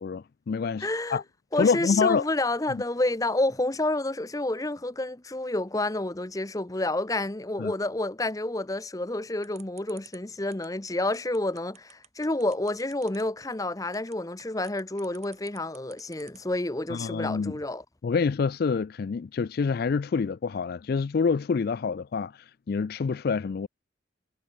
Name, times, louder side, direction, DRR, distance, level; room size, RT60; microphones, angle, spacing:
voice 1, 0.0-1.2 1.6-2.3 2.7-2.8 7.6-7.7 16.9-17.6 18.0-23.7, left 5 dB, 50° left, 0.3 m, -27 dB
voice 2, 0.8-1.2 1.5-17.8, left 2 dB, 15° left, 0.8 m, -29 dB
sound 1, 9.4-16.6, right 10 dB, 35° right, 2.0 m, -52 dB
head